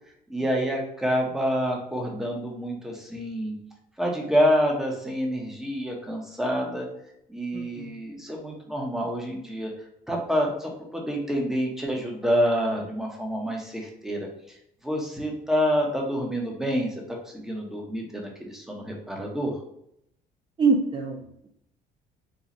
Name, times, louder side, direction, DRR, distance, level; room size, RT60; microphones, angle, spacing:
voice 1, 0.3-3.6 4.0-6.9 7.3-9.7 10.1-14.3 14.8-16.9 17.3-19.5, equal, 5° right, -1 dB, 0.9 m, -27 dB
voice 2, 7.5-7.9 20.6-21.5, right 4 dB, 30° right, -1 dB, 0.5 m, -25 dB
4.1 x 2.4 x 2.9 m, 0.76 s
cardioid pair, 110°, 17 cm